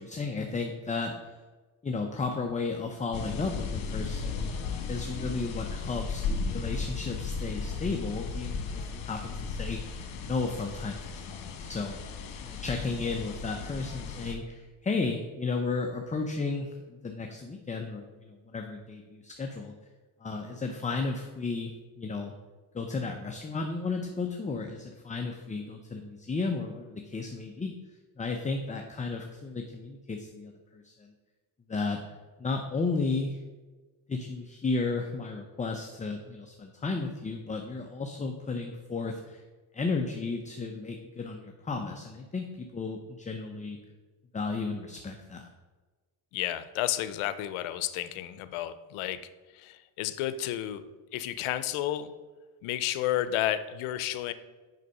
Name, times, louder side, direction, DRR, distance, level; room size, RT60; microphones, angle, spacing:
voice 1, 0.0-1.4 1.8-4.5 4.9-12.0 12.4-19.7 20.2-22.3 22.7-27.8 28.2-31.1 31.7-32.0 32.4-33.4 34.1-39.4 39.7-43.8 44.3-45.5, left 3 dB, 15° left, 3 dB, 0.6 m, -34 dB
sound 1, 3.1-14.3, left 4 dB, 65° left, 1.4 m, -35 dB
voice 2, 46.3-49.2 49.5-50.8 51.1-52.1 52.6-54.3, left 12 dB, 85° left, 13 dB, 0.7 m, -31 dB
6.6 x 5.5 x 5.3 m, 1.3 s
cardioid pair, 100°, 48 cm